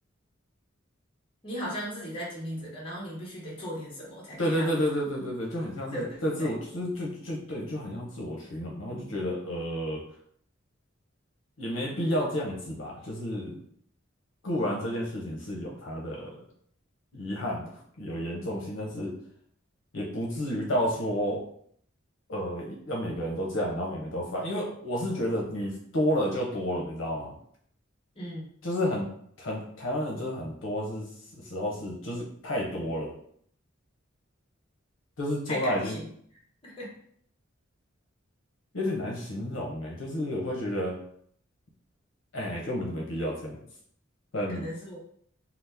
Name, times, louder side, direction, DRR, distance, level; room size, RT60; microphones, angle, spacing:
voice 1, 1.4-4.8 5.9-6.5 28.2-28.5 35.5-36.1 36.6-36.9 44.5-45.0, equal, 25° left, -4 dB, 0.9 m, -37 dB
voice 2, 4.4-10.0 11.6-13.6 14.4-16.4 17.1-19.1 19.9-21.4 22.3-27.3 28.6-29.1 29.4-31.1 31.4-33.1 35.2-36.0 38.7-40.9 42.3-43.6 44.3-44.6, equal, 70° left, -2 dB, 0.7 m, -31 dB
2.9 x 2.0 x 3.3 m, 0.63 s
head